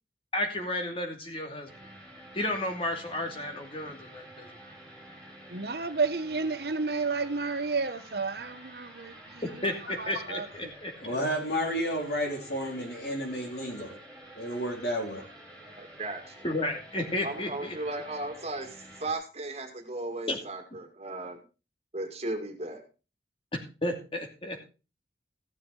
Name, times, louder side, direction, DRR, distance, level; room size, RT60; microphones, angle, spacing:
voice 1, 0.3-1.7 2.3-4.5 9.6-10.9 16.4-17.8 20.3-20.4 23.8-24.7, left 1 dB, 30° left, 2.6 m, -32 dB
sound 1, 1.7-19.1, right 1 dB, 5° left, 4.4 m, -49 dB
voice 2, 5.5-9.1 10.0-10.5, right 4 dB, 60° right, 1.1 m, -31 dB
voice 3, 11.0-14.0 14.3-15.3, equal, 65° left, 4.1 m, -31 dB
voice 4, 15.8-16.4 17.2-21.4 21.9-22.8, right 2 dB, 35° right, 2.3 m, -36 dB
15.0 x 7.4 x 4.9 m
head